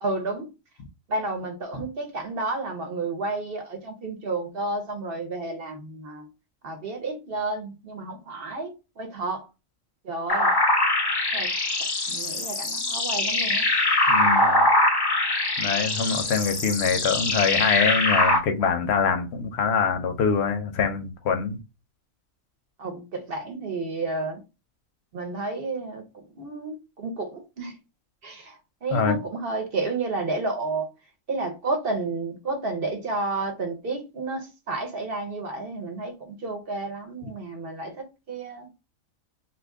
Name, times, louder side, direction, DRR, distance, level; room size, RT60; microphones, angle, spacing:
voice 1, 0.0-0.5 1.1-6.3 6.6-9.5 10.0-10.5 11.3-11.5 12.1-13.6 22.8-24.4 25.1-26.0 26.4-27.7 28.2-28.5 28.8-30.9 31.3-38.7, right 3 dB, 50° right, 0.9 m, -31 dB
sound 1, 10.3-18.4, left 2 dB, 40° left, 0.3 m, -23 dB
voice 2, 14.1-14.7 15.6-21.6 28.9-29.2 37.2-37.3, left 6 dB, 65° left, 0.7 m, -24 dB
2.8 x 2.5 x 3.4 m
omnidirectional pair, 1.4 m